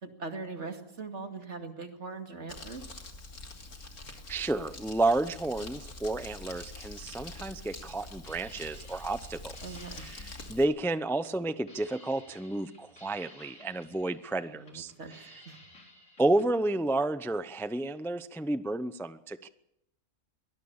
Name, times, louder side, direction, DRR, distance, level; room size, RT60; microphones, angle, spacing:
voice 1, 0.0-2.9 9.6-10.0 14.5-15.1 15.5-15.6, right 4 dB, 50° right, 5 dB, 2.6 m, -41 dB
Crumpling crinkling, 2.5-10.6, left 2 dB, 90° left, 3.1 m, -45 dB
voice 2, 4.3-9.5 10.0-14.9 16.2-19.5, right 2 dB, 5° left, 13 dB, 0.4 m, -31 dB
sound 1, 7.8-16.5, left 1 dB, 60° left, 4.5 m, -55 dB
22.5 x 19.0 x 7.3 m, 0.80 s
omnidirectional pair, 1.5 m